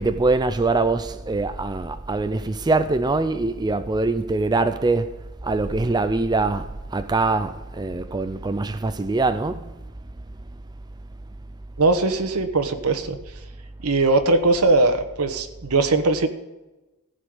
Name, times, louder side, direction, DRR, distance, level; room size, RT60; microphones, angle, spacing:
voice 1, 0.0-9.8, right 3 dB, 20° right, 0.5 m, -23 dB
voice 2, 11.8-13.2 13.8-16.3, right 3 dB, 85° right, 1.2 m, -20 dB
14.5 x 5.1 x 7.8 m
head